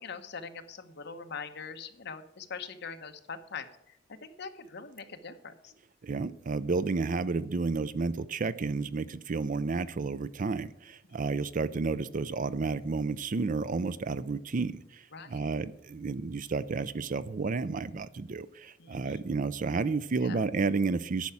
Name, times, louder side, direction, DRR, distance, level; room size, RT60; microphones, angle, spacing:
voice 1, 0.0-4.0 4.2-5.7 15.1-15.5 18.8-19.2 20.2-20.4, left 5 dB, 60° left, 8 dB, 1.0 m, -42 dB
voice 2, 6.0-21.3, right 4 dB, 45° right, 16 dB, 0.5 m, -31 dB
10.5 x 5.7 x 8.6 m, 0.76 s
head